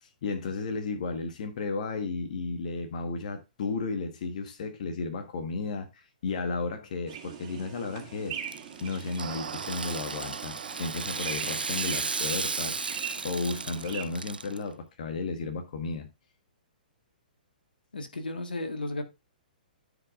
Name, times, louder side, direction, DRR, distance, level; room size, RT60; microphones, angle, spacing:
voice 1, 0.0-8.4 8.8-13.0 13.2-16.1, left 4 dB, 55° left, 1.3 m, -33 dB
sound 1, 7.1-14.1, right 9 dB, 45° right, 2.2 m, -42 dB
Rattle (instrument), 8.3-14.6, right 4 dB, 85° right, 0.4 m, -35 dB
sound 2, 9.2-14.7, right 7 dB, 60° right, 1.0 m, -43 dB
voice 2, 17.9-19.0, left 2 dB, 80° left, 1.7 m, -34 dB
14.0 x 5.2 x 2.5 m
figure-of-eight pair, 120°, 5 cm